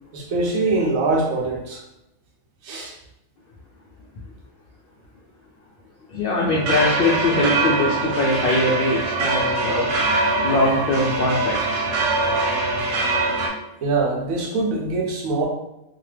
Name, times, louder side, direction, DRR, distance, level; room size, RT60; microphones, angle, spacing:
voice 1, 0.1-1.8 2.6-2.9 13.8-15.5, right 3 dB, 75° right, 0 dB, 1.0 m, -23 dB
voice 2, 6.1-9.9 10.4-11.9, left 2 dB, 85° left, -3 dB, 0.5 m, -22 dB
sound 1, 6.5-13.5, right 2 dB, 90° right, 1.1 m, -23 dB
2.8 x 2.2 x 3.2 m, 0.87 s
omnidirectional pair, 1.5 m